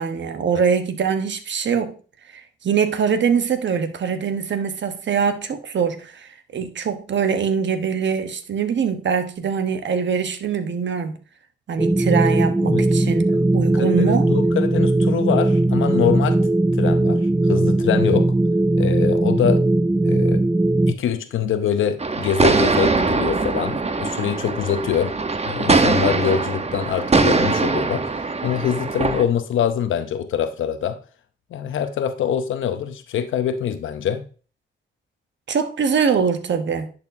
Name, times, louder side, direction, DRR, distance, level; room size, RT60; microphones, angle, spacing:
voice 1, 0.0-1.9 2.6-11.2 11.7-13.2 13.5-14.3 35.5-36.9, right 6 dB, 70° right, 1.0 m, -23 dB
sound 1, 11.8-20.9, right 2 dB, 10° right, 0.3 m, -19 dB
voice 2, 13.7-16.4 16.8-17.2 17.5-18.3 18.8-19.6 20.0-20.5 20.9-25.1 25.4-28.1 28.4-31.0 31.5-34.3, left 9 dB, 85° left, 0.7 m, -24 dB
sound 2, 22.0-29.2, right 3 dB, 35° right, 0.9 m, -21 dB
10.5 x 4.3 x 2.6 m
supercardioid pair, 45°, 20 cm